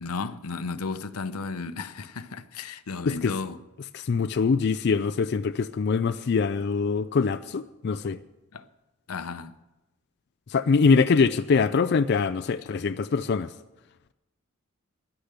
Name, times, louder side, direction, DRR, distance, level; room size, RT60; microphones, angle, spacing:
voice 1, 0.0-3.6 8.5-8.6 9.1-9.5, left 4 dB, 85° left, 0.7 m, -34 dB
voice 2, 3.9-8.2 10.5-13.5, left 5 dB, 50° left, 0.4 m, -23 dB
11.5 x 10.0 x 8.1 m
head